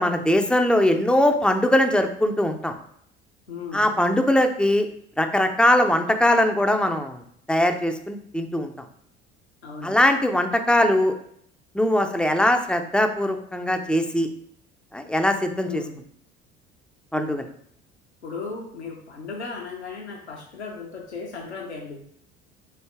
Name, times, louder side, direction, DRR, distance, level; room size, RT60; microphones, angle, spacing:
voice 1, 0.0-2.7 3.7-4.9 5.2-7.2 7.5-8.7 9.8-11.1 11.7-14.3 14.9-15.8 17.1-17.5, left 1 dB, 5° left, 6 dB, 0.3 m, -21 dB
voice 2, 3.5-3.9 9.6-10.0 15.7-16.0 18.2-22.0, left 4 dB, 85° left, -1 dB, 0.7 m, -36 dB
4.0 x 3.3 x 3.3 m, 0.66 s
figure-of-eight pair, 60°, 33 cm